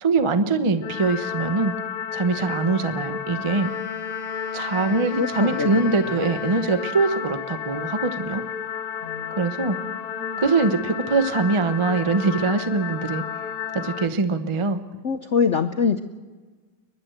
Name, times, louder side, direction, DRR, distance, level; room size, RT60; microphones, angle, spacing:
voice 1, 0.0-1.7 2.1-3.7 4.5-8.4 9.3-9.8 10.4-13.2 13.7-14.8, right 3 dB, 30° right, 9 dB, 0.5 m, -23 dB
sound 1, 0.8-14.1, left 8 dB, 90° left, 1.7 m, -32 dB
Wind instrument woodwind instrument, 3.5-7.4, left 2 dB, 40° left, 3.8 m, -40 dB
voice 2, 4.9-5.7 6.1-6.2 9.0-10.4 15.0-16.0, left 6 dB, 70° left, 8 dB, 0.7 m, -26 dB
29.5 x 11.5 x 7.8 m, 1.4 s
omnidirectional pair, 2.2 m